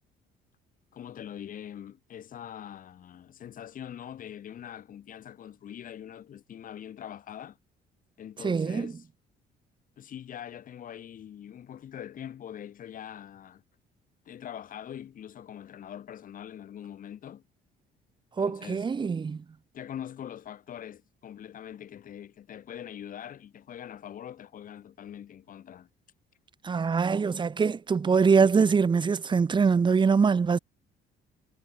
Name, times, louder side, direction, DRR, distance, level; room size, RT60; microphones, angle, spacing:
voice 1, 0.9-7.6 8.2-9.1 10.0-13.6 14.3-17.4 18.4-18.9 19.7-25.9, left 10 dB, 55° left, 7.2 m, -43 dB
voice 2, 8.4-8.9 18.4-19.4 26.6-30.6, right 5 dB, 25° right, 1.6 m, -23 dB
cardioid pair, 110°, 17 cm